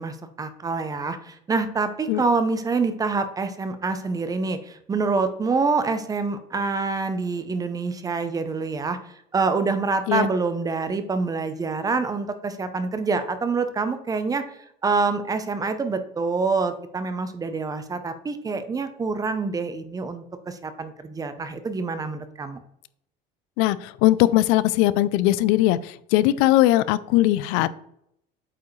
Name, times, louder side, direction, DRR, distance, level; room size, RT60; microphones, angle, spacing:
voice 1, 0.0-9.0 9.3-14.6 14.8-22.6, right 4 dB, 15° right, 10 dB, 0.6 m, -26 dB
voice 2, 23.6-27.8, left 15 dB, 90° left, 17 dB, 0.4 m, -20 dB
8.4 x 4.7 x 3.2 m, 0.73 s
cardioid pair, 150°, 20 cm